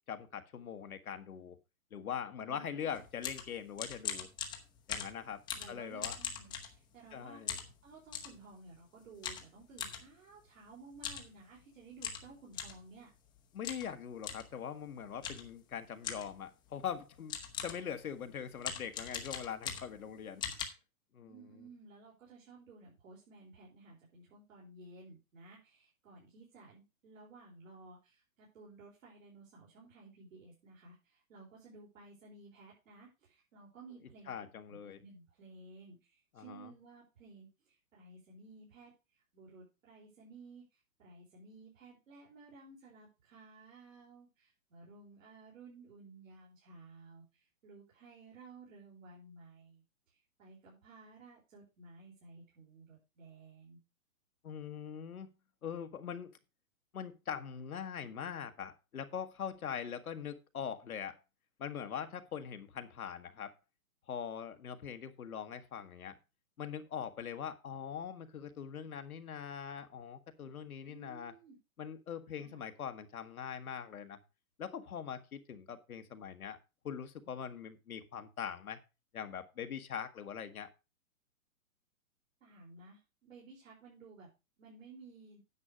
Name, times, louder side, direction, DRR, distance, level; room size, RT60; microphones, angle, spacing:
voice 1, 0.1-1.5 1.9-4.3 4.9-6.2 7.1-7.6 13.5-17.3 17.6-20.4 21.1-21.7 34.3-35.0 36.3-36.7 54.4-55.3 55.6-56.3 56.9-61.2 61.6-63.5 64.1-66.2 66.6-71.3 71.8-74.2 74.6-76.6 76.8-78.8 79.1-80.7, left 8 dB, 80° left, 8 dB, 1.5 m, -42 dB
voice 2, 2.4-2.9 5.5-7.4 7.8-13.1 21.2-53.8 70.9-71.6 72.3-72.6 82.4-84.3 84.6-85.4, right 3 dB, 65° right, -3 dB, 4.3 m, -56 dB
sound 1, 2.9-7.1 7.5-8.4 9.2-10.0 10.9-11.3 11.6-11.7 12.0-12.8 13.6-13.9 14.2-14.5 15.2-15.5 16.0-16.4 17.0-17.1 17.3-17.9 18.6-20.1 20.4-20.7, left 8 dB, 10° left, 0.8 m, -41 dB
9.7 x 6.3 x 5.0 m, 0.28 s
hypercardioid pair, 145°, 43 cm